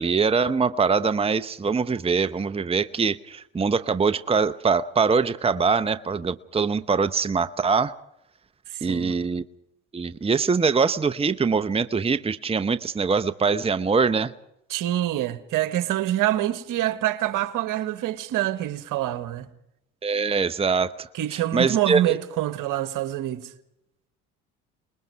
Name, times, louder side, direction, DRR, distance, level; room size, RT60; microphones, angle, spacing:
voice 1, 0.0-8.0 8.8-9.4 9.9-14.3 20.0-22.0, right 5 dB, 15° right, 0.9 m, -23 dB
voice 2, 8.7-9.1 14.7-19.5 21.1-23.5, right 13 dB, 65° right, 1.7 m, -26 dB
28.0 x 20.5 x 4.7 m
hypercardioid pair, 70°, 35 cm